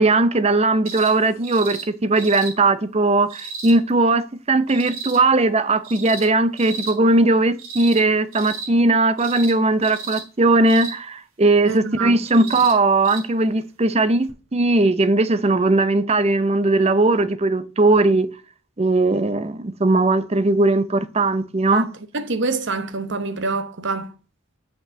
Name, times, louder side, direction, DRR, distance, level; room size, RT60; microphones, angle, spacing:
voice 1, 0.0-18.3 18.8-21.9, right 2 dB, 30° right, 0.6 m, -18 dB
sound 1, 0.8-1.1 1.4-1.8 2.2-2.5 3.3-3.7 4.7-5.2 5.8-6.3 6.6-6.9 7.6-8.0 8.3-8.7 9.2-9.5 9.8-10.2 10.7-11.0 12.2-12.7 13.0-13.2 14.3-14.4, right 5 dB, 90° right, 3.3 m, -33 dB
voice 2, 11.6-12.2 21.7-21.9 22.1-24.1, right 3 dB, 60° right, 1.0 m, -26 dB
6.9 x 5.3 x 7.1 m
head